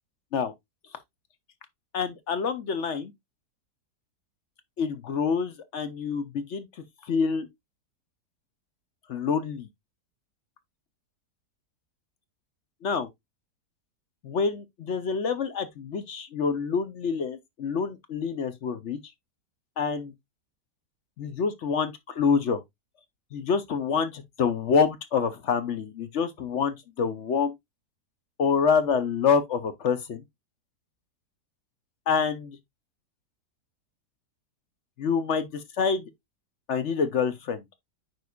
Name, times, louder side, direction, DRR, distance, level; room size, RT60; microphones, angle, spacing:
voice 1, 1.9-3.1 4.8-6.7 7.1-7.5 9.1-9.7 12.8-13.1 14.2-19.0 19.8-20.1 21.2-22.6 23.3-27.5 28.4-30.2 32.1-32.6 35.0-36.1 36.7-37.6, left 6 dB, 55° left, 0.9 m, -27 dB
9.3 x 4.8 x 2.3 m
omnidirectional pair, 1.8 m